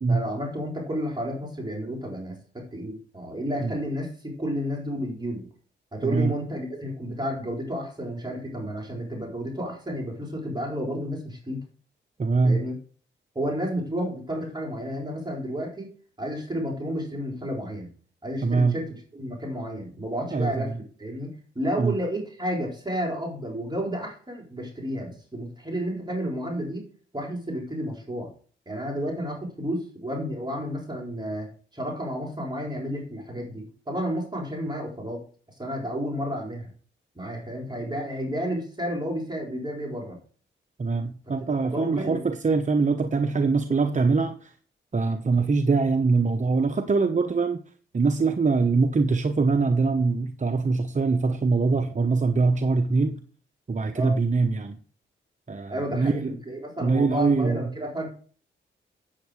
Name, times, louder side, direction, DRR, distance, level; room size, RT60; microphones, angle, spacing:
voice 1, 0.1-5.5 5.9-11.6 12.4-12.7 13.3-15.9 16.2-17.9 18.2-20.7 21.0-26.9 27.1-28.3 28.7-31.5 31.7-35.2 35.6-36.7 37.2-40.2 41.3-41.4 41.6-42.2 53.9-54.1 55.7-58.1, equal, 20° right, 4.1 m, -31 dB
voice 2, 6.0-6.3 12.2-12.6 18.4-18.8 20.3-20.8 21.8-22.0 40.8-44.5 44.9-47.6 47.9-53.2 53.7-54.8 55.5-56.3 56.8-57.7, right 4 dB, 35° right, 0.9 m, -23 dB
8.6 x 8.1 x 4.8 m
cardioid pair, 55°, 21 cm